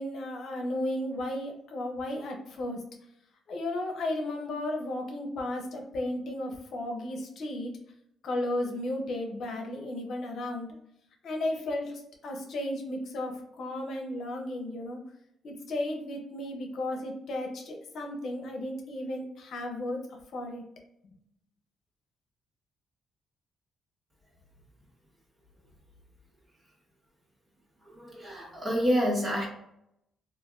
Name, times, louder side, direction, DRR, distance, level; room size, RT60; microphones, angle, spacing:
voice 1, 0.0-2.8 3.5-7.8 8.2-10.7 11.2-15.0 15.4-20.0 20.3-20.6, left 1 dB, 65° left, 2 dB, 0.8 m, -34 dB
voice 2, 27.8-29.5, equal, 30° right, -2 dB, 1.3 m, -28 dB
3.3 x 2.6 x 2.3 m, 0.78 s
cardioid pair, 90°, 0 cm